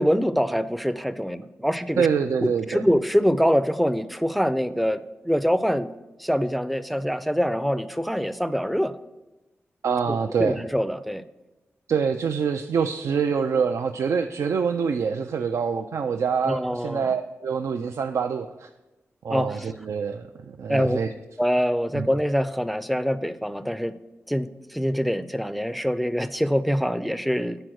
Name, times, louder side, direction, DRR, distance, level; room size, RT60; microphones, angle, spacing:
voice 1, 0.0-2.1 2.4-5.9 6.2-8.9 10.1-11.2 16.4-17.1 19.3-19.6 20.7-21.0 21.4-24.0 24.3-27.6, equal, ahead, 13 dB, 0.4 m, -24 dB
voice 2, 2.0-2.8 9.8-10.6 11.9-18.7 19.2-21.1 21.9-22.1, right 6 dB, 80° right, 7 dB, 0.4 m, -25 dB
9.0 x 4.2 x 6.2 m, 1.0 s
wide cardioid pair, 80°, 5 cm